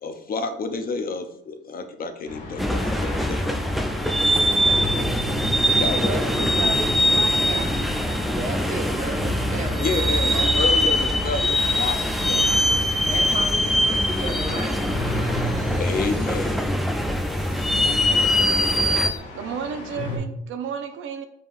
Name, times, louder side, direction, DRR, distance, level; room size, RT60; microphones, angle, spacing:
voice 1, 0.0-3.4 4.7-5.0 5.8-6.5 9.8-12.4 15.8-16.7, left 4 dB, 50° left, 7 dB, 0.6 m, -30 dB
sound 1, 2.3-20.2, left 1 dB, 70° left, 1.3 m, -35 dB
sound 2, 2.6-19.1, equal, ahead, 0.4 m, -22 dB
voice 2, 6.1-7.7 8.0-8.4 19.3-21.2, right 7 dB, 80° right, 7 dB, 0.6 m, -33 dB
voice 3, 7.3-7.9 8.2-9.9 10.2-10.5 13.0-14.8, right 2 dB, 40° right, 2 dB, 1.1 m, -33 dB
sound 3, 11.6-19.2, right 1 dB, 15° right, 1.3 m, -46 dB
5.1 x 3.5 x 2.5 m, 0.70 s
cardioid pair, 90°, 20 cm